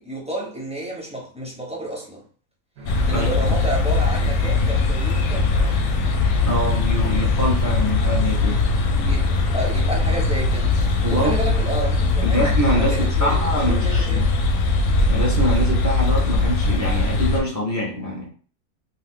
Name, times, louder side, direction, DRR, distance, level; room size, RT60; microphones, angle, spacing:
voice 1, 0.0-2.2 3.1-5.5 9.0-10.7 11.1-12.5 12.8-14.2, right 1 dB, 5° right, 0.8 m, -30 dB
sound 1, 2.8-12.6, right 1 dB, 75° right, 1.0 m, -35 dB
sound 2, 2.9-17.4, left 3 dB, 65° left, 0.8 m, -20 dB
voice 2, 6.5-8.6 11.0-11.4 12.2-14.3 15.1-18.3, equal, 25° right, 0.4 m, -24 dB
2.7 x 2.3 x 3.6 m
omnidirectional pair, 1.5 m